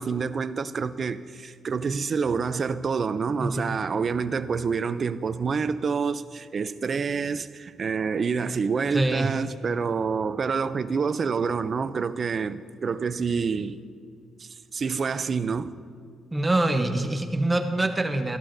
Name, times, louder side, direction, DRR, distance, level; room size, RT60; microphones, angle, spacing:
voice 1, 0.0-13.8 14.4-15.8, right 5 dB, 45° right, 0.4 m, -27 dB
voice 2, 3.4-3.7 8.9-9.4 16.3-18.4, right 2 dB, 20° right, 0.8 m, -25 dB
14.0 x 12.0 x 2.6 m
cardioid pair, 80°, 0 cm